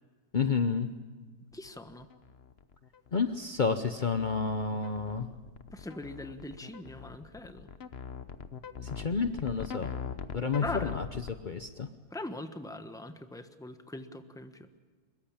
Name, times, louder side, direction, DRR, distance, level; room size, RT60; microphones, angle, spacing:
voice 1, 0.3-0.9 3.1-5.3 8.8-9.9 10.3-11.0 11.5-11.9, left 5 dB, 65° left, 9 dB, 0.4 m, -30 dB
sound 1, 1.5-11.3, left 7 dB, 45° left, 0.9 m, -41 dB
voice 2, 1.5-2.1 5.7-7.7 10.6-11.0 12.1-14.7, left 2 dB, 5° left, 8 dB, 0.8 m, -41 dB
24.0 x 22.0 x 8.7 m, 1.5 s
omnidirectional pair, 2.1 m